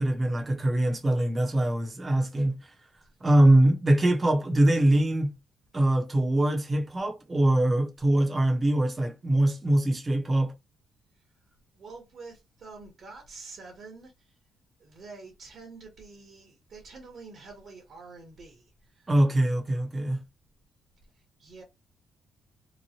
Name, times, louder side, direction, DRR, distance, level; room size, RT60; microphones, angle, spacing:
voice 1, 0.0-2.6 3.2-5.3 5.7-10.5 19.1-20.2, right 1 dB, 25° right, 0.9 m, -23 dB
voice 2, 11.7-14.4 14.8-19.1 21.4-21.6, right 4 dB, 55° right, 1.2 m, -47 dB
3.0 x 2.1 x 2.8 m
cardioid pair, 90°, 0 cm